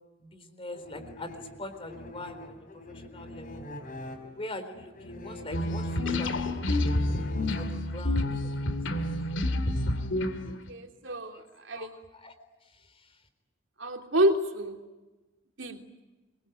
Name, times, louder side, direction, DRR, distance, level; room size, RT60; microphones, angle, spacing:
voice 1, 0.2-3.7 4.2-6.9 7.6-9.2 11.3-11.4 11.7-12.3 12.6-13.2, left 1 dB, 30° left, 9 dB, 3.9 m, -44 dB
sound 1, 0.7-8.2, left 1 dB, 45° left, 4.0 m, -44 dB
sound 2, 5.5-10.7, left 1 dB, 75° left, 2.6 m, -29 dB
voice 2, 10.7-11.4 11.7-11.9 13.8-14.8 15.6-15.8, right 1 dB, 75° right, 4 dB, 3.2 m, -28 dB
26.5 x 23.0 x 9.3 m, 1.1 s
head